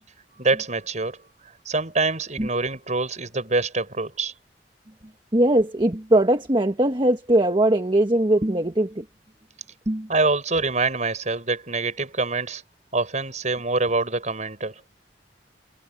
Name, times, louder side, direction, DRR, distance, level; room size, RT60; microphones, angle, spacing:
voice 1, 0.4-1.2 1.6-4.3 10.1-12.6 12.9-14.8, right 3 dB, 45° right, 6.8 m, -25 dB
voice 2, 5.3-9.0 9.9-10.1, right 1 dB, 25° right, 1.4 m, -20 dB
head